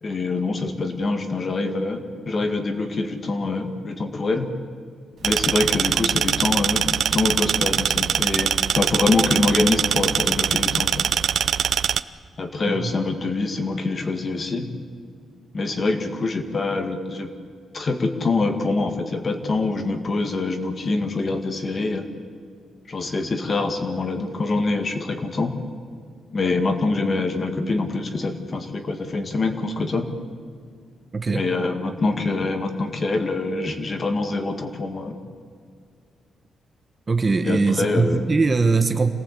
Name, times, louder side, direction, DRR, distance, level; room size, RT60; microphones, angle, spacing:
voice 1, 0.0-4.5 5.2-11.0 12.4-14.7 15.5-17.3 17.7-22.0 22.9-25.5 26.3-30.1 31.3-35.2 37.5-38.3, left 3 dB, 35° left, 6 dB, 2.0 m, -25 dB
sound 1, 5.2-12.0, right 8 dB, 60° right, 0.6 m, -22 dB
voice 2, 31.1-31.4 37.1-39.1, right 4 dB, 25° right, 7 dB, 1.3 m, -21 dB
27.0 x 18.0 x 8.5 m, 2.1 s
wide cardioid pair, 150°, 0 cm